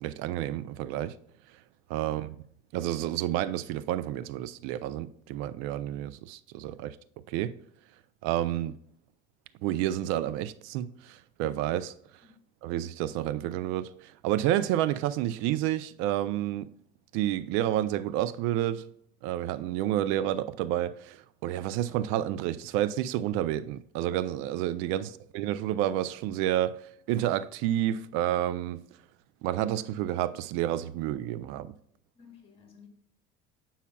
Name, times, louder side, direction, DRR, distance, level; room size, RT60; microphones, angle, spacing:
voice 1, 0.0-1.2 1.9-2.3 2.7-7.0 7.3-7.5 8.2-8.7 9.6-11.9 12.6-16.7 17.1-18.8 19.2-26.8 27.1-28.8 29.4-31.7, right 12 dB, 75° right, 0.5 m, -30 dB
voice 2, 2.0-2.3 12.2-12.3 25.0-25.1 32.1-32.9, left 6 dB, 25° left, 2.1 m, -55 dB
8.4 x 5.6 x 2.3 m
cardioid pair, 115°, 21 cm